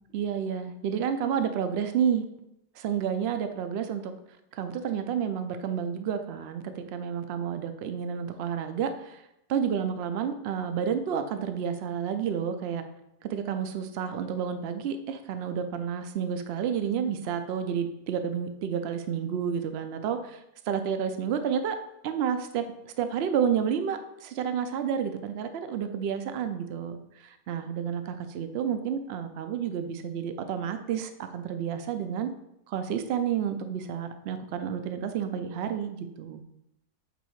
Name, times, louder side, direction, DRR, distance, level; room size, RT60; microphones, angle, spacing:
voice 1, 0.1-2.2 2.8-4.1 4.5-9.2 9.5-12.8 13.2-21.8 22.0-32.3 32.7-36.4, right 8 dB, 80° right, 8 dB, 0.5 m, -30 dB
8.2 x 2.8 x 4.5 m, 0.83 s
omnidirectional pair, 1.7 m